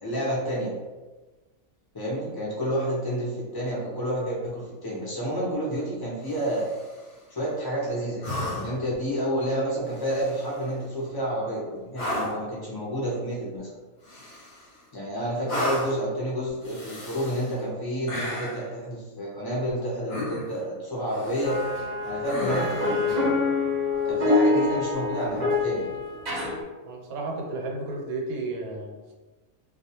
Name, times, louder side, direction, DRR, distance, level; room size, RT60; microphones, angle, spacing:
voice 1, 0.0-0.7 1.9-6.7 7.3-13.7 14.9-21.6 22.0-23.2 24.1-25.9, equal, 35° left, -6 dB, 0.4 m, -29 dB
sound 1, 6.3-7.0 8.2-8.9 9.9-10.6 11.9-12.5 14.0-14.8 15.5-16.1 16.6-17.5 18.1-18.7 20.1-20.6 21.1-21.8 22.2-23.0 24.9-25.0, left 1 dB, 55° left, 0.8 m, -34 dB
sound 2, 21.4-26.6, left 3 dB, 45° right, 0.6 m, -25 dB
voice 2, 26.8-29.1, right 2 dB, 80° right, 0 dB, 1.0 m, -33 dB
2.3 x 2.3 x 2.8 m, 1.2 s
omnidirectional pair, 1.5 m